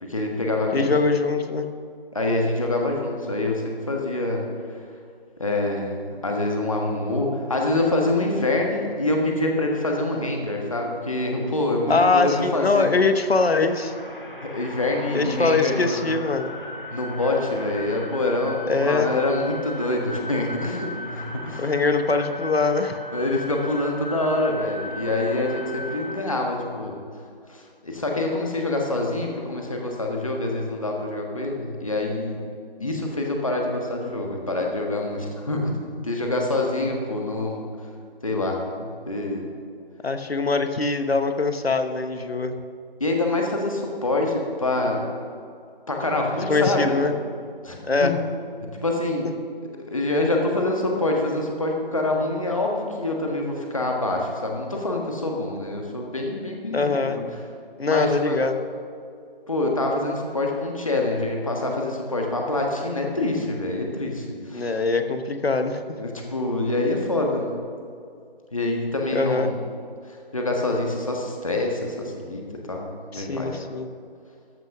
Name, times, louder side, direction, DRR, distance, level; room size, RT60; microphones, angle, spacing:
voice 1, 0.0-0.9 2.1-4.4 5.4-12.9 14.4-16.0 16.9-21.6 23.1-27.0 27.5-32.4 32.8-37.6 38.2-39.4 43.0-45.0 45.9-47.0 47.6-48.1 48.7-49.3 49.9-57.2 57.9-58.4 59.5-64.8 66.0-67.5 68.5-69.6 70.3-72.9 73.1-73.5, left 2 dB, 35° left, 0 dB, 1.4 m, -26 dB
voice 2, 0.7-1.7 11.9-13.9 15.1-16.5 18.7-19.1 21.6-23.0 40.0-42.6 46.5-47.1 47.9-48.1 56.7-57.2 57.8-58.6 64.5-66.0 69.1-69.5 73.1-73.9, left 3 dB, 85° left, 8 dB, 1.1 m, -22 dB
sound 1, 12.6-26.3, left 2 dB, 60° left, 1.8 m, -37 dB
14.0 x 6.1 x 5.9 m, 2.3 s
figure-of-eight pair, 175°, 30 cm